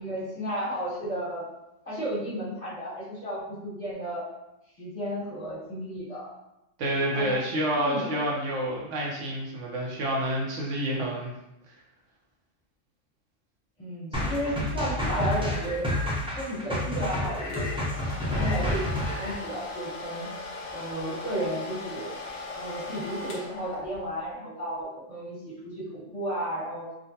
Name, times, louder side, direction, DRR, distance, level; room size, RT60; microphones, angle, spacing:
voice 1, 0.0-1.4 1.9-4.2 4.8-6.3 7.1-7.4 7.8-8.2 13.8-15.8 16.3-17.8 18.1-20.3 20.7-22.1 22.5-26.9, equal, 30° left, -11 dB, 1.7 m, -33 dB
voice 2, 6.8-11.3, right 1 dB, 75° right, -3 dB, 1.0 m, -28 dB
sound 1, 14.1-19.3, left 1 dB, 10° right, 0.4 m, -29 dB
Domestic sounds home sounds, 17.5-24.2, left 2 dB, 75° left, 1.0 m, -39 dB
3.7 x 2.1 x 2.7 m, 0.87 s
omnidirectional pair, 1.3 m